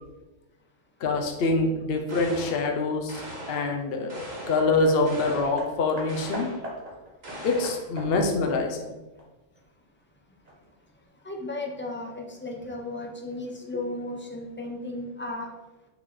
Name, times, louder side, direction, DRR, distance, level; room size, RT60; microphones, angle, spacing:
voice 1, 1.0-3.1 3.5-6.5 7.4-8.9, left 3 dB, 55° left, 3 dB, 0.9 m, -25 dB
sound 1, 2.1-2.7 3.1-3.7 4.1-4.7 5.1-5.6 6.1-6.7 7.2-7.9, right 1 dB, 80° right, 2.1 m, -40 dB
Hammer, 4.9-9.6 10.4-10.5, equal, 30° right, 1.3 m, -41 dB
voice 2, 11.1-15.5, left 2 dB, 10° left, 1 dB, 0.7 m, -35 dB
5.8 x 4.7 x 4.1 m, 1.1 s
omnidirectional pair, 1.3 m